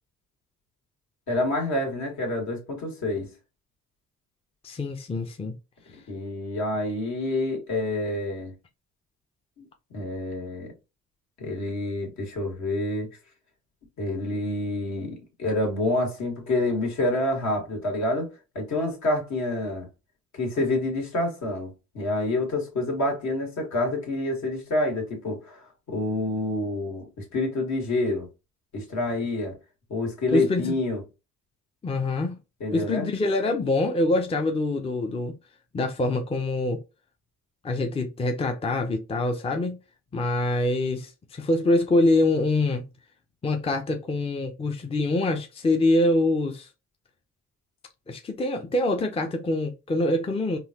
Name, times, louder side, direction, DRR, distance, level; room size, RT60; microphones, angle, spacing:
voice 1, 1.3-3.3 6.1-8.5 9.6-9.7 9.9-10.7 11.4-13.1 14.0-18.3 18.6-19.9 20.3-28.3 28.7-29.6 29.9-31.0 32.6-33.1, left 2 dB, 65° left, 1.8 m, -28 dB
voice 2, 4.6-5.5 30.3-30.7 31.8-32.4 32.7-35.3 35.7-36.8 37.6-39.8 40.1-42.8 43.4-46.7 48.1-50.6, left 2 dB, 20° left, 0.5 m, -25 dB
3.8 x 2.3 x 2.7 m
cardioid pair, 90°, 30 cm